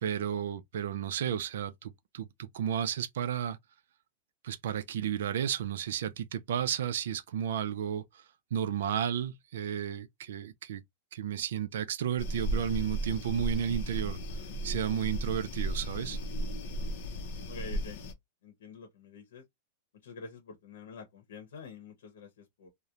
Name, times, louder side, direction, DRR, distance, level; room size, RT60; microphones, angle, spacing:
voice 1, 0.0-3.6 4.4-8.2 8.5-10.8 11.1-14.2 14.6-16.2, right 9 dB, 70° right, 0.4 m, -33 dB
sound 1, 12.2-18.1, right 1 dB, 45° left, 0.5 m, -35 dB
voice 2, 17.5-18.1 18.4-19.5 20.0-22.7, left 5 dB, 80° left, 0.8 m, -47 dB
2.9 x 2.1 x 2.4 m
supercardioid pair, 175°, 0 cm